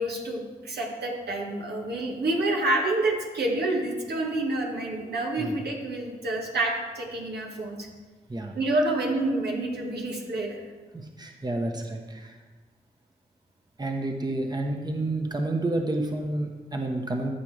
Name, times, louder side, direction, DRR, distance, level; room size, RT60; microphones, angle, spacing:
voice 1, 0.0-7.9 8.5-10.6, right 2 dB, 70° right, 0 dB, 1.6 m, -28 dB
voice 2, 10.9-12.4 13.8-17.3, right 2 dB, 25° right, 3 dB, 1.2 m, -30 dB
12.5 x 5.8 x 3.4 m, 1.3 s
supercardioid pair, 40°, 18 cm